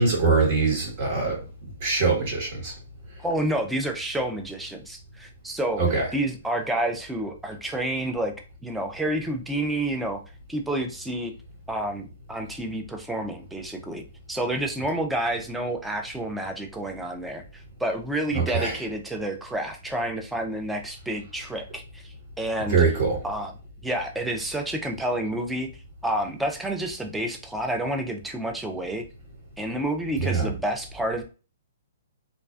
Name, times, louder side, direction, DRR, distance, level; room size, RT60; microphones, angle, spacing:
voice 1, 0.0-1.4 1.8-2.7 5.8-6.1 18.3-18.8 22.7-23.2 30.2-30.5, right 4 dB, 50° right, -2 dB, 1.2 m, -23 dB
voice 2, 3.2-5.8 6.1-8.3 8.6-10.2 10.5-11.3 11.7-14.0 14.3-22.8 23.2-23.5 23.8-25.7 26.0-29.0 29.6-31.2, right 1 dB, 5° right, 4 dB, 0.4 m, -29 dB
2.4 x 2.1 x 2.4 m, 0.34 s
hypercardioid pair, 130°, 0 cm